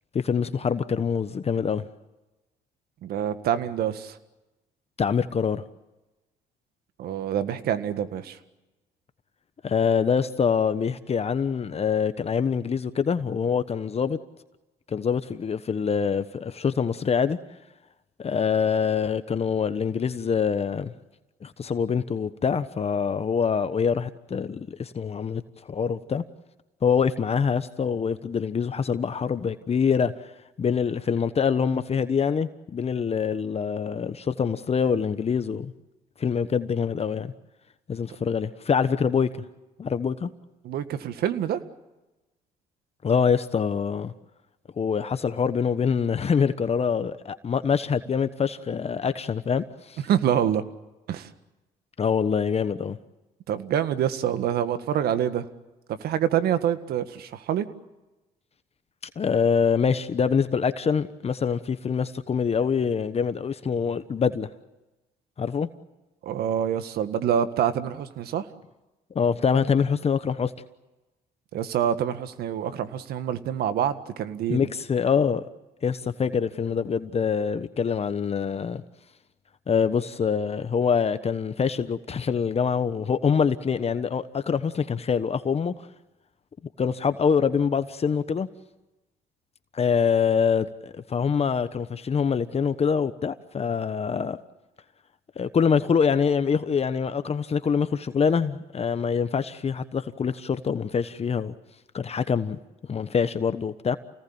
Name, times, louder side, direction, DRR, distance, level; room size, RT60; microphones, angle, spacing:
voice 1, 0.1-1.8 5.0-5.6 9.6-14.2 14.9-17.4 18.2-20.9 21.4-26.2 26.8-30.1 30.6-35.7 36.2-37.3 37.9-39.3 39.8-40.3 43.0-44.1 44.8-50.0 52.0-53.0 59.2-64.5 65.4-65.7 69.1-70.5 74.5-75.5 75.8-78.8 79.7-85.7 86.8-88.5 89.7-94.4 95.4-101.5 101.9-102.6 102.9-104.0, left 6 dB, 40° left, 1.2 m, -25 dB
voice 2, 3.0-4.2 7.0-8.4 40.6-41.6 50.1-50.6 51.1-51.3 53.5-55.5 56.0-57.7 66.2-68.5 71.5-74.7, right 9 dB, 70° right, 1.8 m, -26 dB
28.5 x 19.0 x 8.8 m
supercardioid pair, 70°, 17 cm